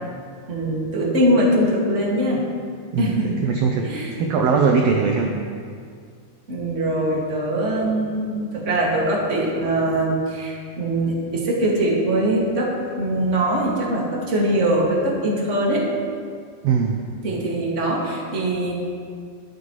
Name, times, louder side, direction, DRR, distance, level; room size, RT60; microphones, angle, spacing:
voice 1, 0.5-2.5 3.0-3.4 3.8-4.2 6.5-15.8 17.2-18.7, right 1 dB, 25° right, -4 dB, 1.9 m, -22 dB
voice 2, 2.9-5.3 16.6-17.0, right 5 dB, 70° right, 1 dB, 1.6 m, -21 dB
20.5 x 8.1 x 3.1 m, 2.2 s
omnidirectional pair, 3.6 m